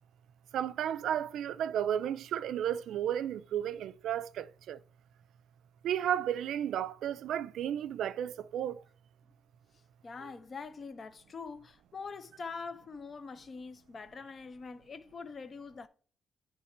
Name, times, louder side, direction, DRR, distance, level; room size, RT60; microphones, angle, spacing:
voice 1, 0.5-4.8 5.8-8.8 10.2-10.3, right 10 dB, 75° right, 0.4 m, -33 dB
voice 2, 10.0-15.9, left 4 dB, 30° left, 0.5 m, -44 dB
9.7 x 3.3 x 4.3 m
cardioid pair, 170°, 0 cm